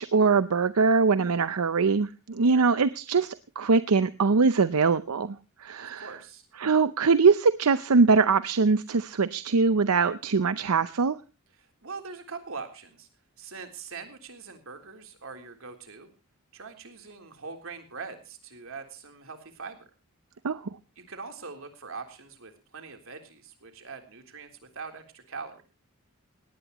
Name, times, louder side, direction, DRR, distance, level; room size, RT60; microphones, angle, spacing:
voice 1, 0.0-6.1 6.6-11.2 20.4-20.6, right 4 dB, 90° right, 14 dB, 0.7 m, -22 dB
voice 2, 5.8-6.4 11.5-13.1 13.4-16.1 16.5-19.9 21.0-25.6, right 4 dB, 65° right, 5 dB, 3.6 m, -42 dB
18.5 x 18.0 x 3.0 m, 0.33 s
head